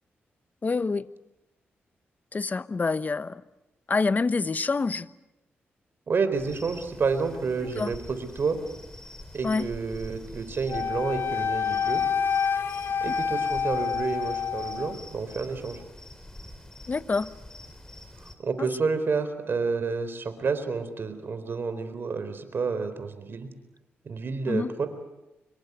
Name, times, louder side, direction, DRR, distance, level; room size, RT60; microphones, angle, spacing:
voice 1, 0.6-1.1 2.3-3.4 3.9-5.1 7.6-7.9 9.4-9.7 16.9-17.3 18.6-18.7 24.5-24.7, left 4 dB, 40° left, 1.0 m, -27 dB
voice 2, 6.1-8.6 9.3-12.0 13.0-15.8 18.4-23.5 24.0-24.9, right 4 dB, 55° right, 4.1 m, -29 dB
sound 1, 6.3-18.3, left 1 dB, 15° left, 4.3 m, -45 dB
Wind instrument woodwind instrument, 10.7-15.0, left 6 dB, 60° left, 1.3 m, -27 dB
25.5 x 22.5 x 8.3 m
cardioid pair, 65°, 4 cm